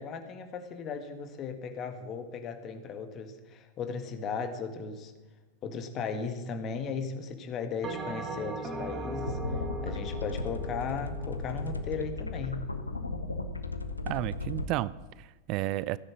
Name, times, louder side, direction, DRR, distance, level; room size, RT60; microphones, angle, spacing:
voice 1, 0.0-5.1 5.6-9.4 9.8-12.7, left 5 dB, 30° left, 7 dB, 1.9 m, -36 dB
Bell, 7.8-12.4, right 2 dB, 25° right, 2.1 m, -39 dB
sound 1, 9.3-14.7, left 3 dB, 80° left, 1.2 m, -35 dB
voice 2, 14.0-16.0, right 16 dB, 40° right, 20 dB, 0.4 m, -32 dB
16.0 x 10.5 x 7.5 m, 1.2 s
figure-of-eight pair, 90°, 0 cm